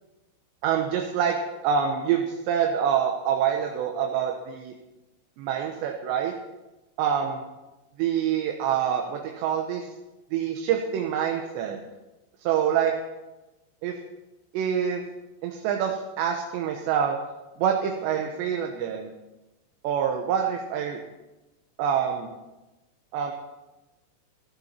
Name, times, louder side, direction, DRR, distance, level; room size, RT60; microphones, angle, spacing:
voice 1, 0.6-1.4 1.6-4.7 5.4-6.3 7.0-7.4 8.0-9.9 10.3-11.8 12.4-12.9 13.8-14.0 14.5-15.0 15.4-17.2 17.6-19.1 19.8-21.0 21.8-22.3 23.1-23.3, right 8 dB, 80° right, 2 dB, 3.1 m, -26 dB
16.5 x 12.0 x 4.4 m, 1.1 s
omnidirectional pair, 5.3 m